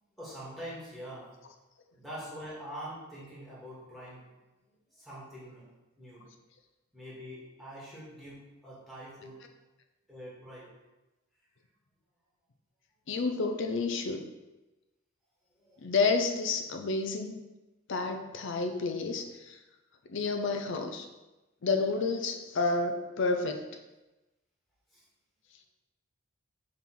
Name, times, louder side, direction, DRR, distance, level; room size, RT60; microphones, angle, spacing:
voice 1, 0.2-1.3 1.9-4.3 4.9-5.6 6.0-6.2 6.9-9.4 10.1-10.7 15.6-15.8 24.9-25.0, equal, ahead, -9 dB, 2.0 m, -44 dB
voice 2, 13.1-14.3 15.8-17.4 17.9-19.6 20.1-21.1 21.6-23.8, left 4 dB, 60° left, 5 dB, 0.5 m, -30 dB
5.7 x 3.6 x 5.9 m, 1.1 s
head